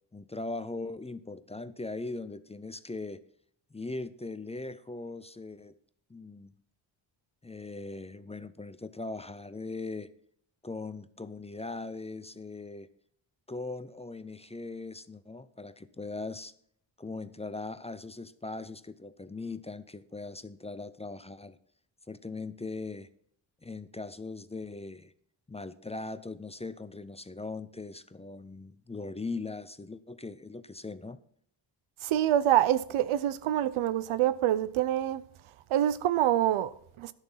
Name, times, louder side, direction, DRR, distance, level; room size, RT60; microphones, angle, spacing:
voice 1, 0.1-3.2 3.7-5.7 6.1-6.5 7.4-10.1 10.6-12.9 13.5-16.5 17.0-21.6 22.1-23.1 23.6-25.1 25.5-31.2, left 3 dB, 15° left, 0.5 m, -40 dB
voice 2, 32.0-35.2 35.7-37.1, right 12 dB, 90° right, 0.7 m, -26 dB
11.0 x 6.9 x 5.6 m
cardioid pair, 85°, 48 cm